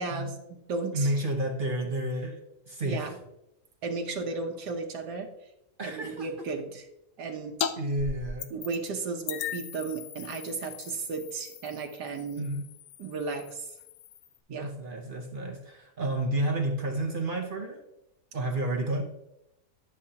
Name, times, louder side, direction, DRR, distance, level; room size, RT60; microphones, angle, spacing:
voice 1, 0.0-1.1 2.8-3.2 3.8-5.3 5.8-6.9 7.2-7.5 8.5-12.4 13.0-13.7 14.5-14.7, right 4 dB, 85° right, 2 dB, 1.4 m, -34 dB
voice 2, 0.9-3.1 5.8-6.5 7.8-8.5 12.4-12.6 14.5-17.8 18.3-19.0, right 1 dB, 45° right, 3 dB, 0.7 m, -31 dB
sound 1, 7.6-7.7 8.0-8.9 9.3-14.4, left 8 dB, 85° left, 1.2 m, -38 dB
10.5 x 6.3 x 2.8 m, 0.87 s
omnidirectional pair, 1.7 m